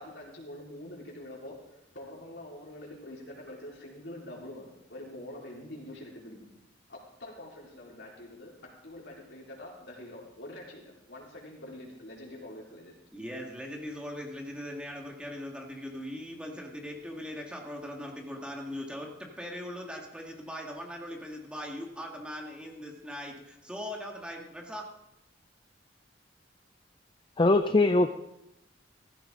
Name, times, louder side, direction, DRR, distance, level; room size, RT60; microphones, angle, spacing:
voice 1, 0.0-1.6 1.9-6.5 6.9-13.0, left 1 dB, 70° left, -3 dB, 4.2 m, -45 dB
voice 2, 13.1-24.9, equal, 5° right, 0 dB, 1.9 m, -40 dB
voice 3, 27.4-28.1, left 2 dB, 25° left, 8 dB, 0.5 m, -22 dB
15.5 x 15.5 x 3.8 m, 0.84 s
head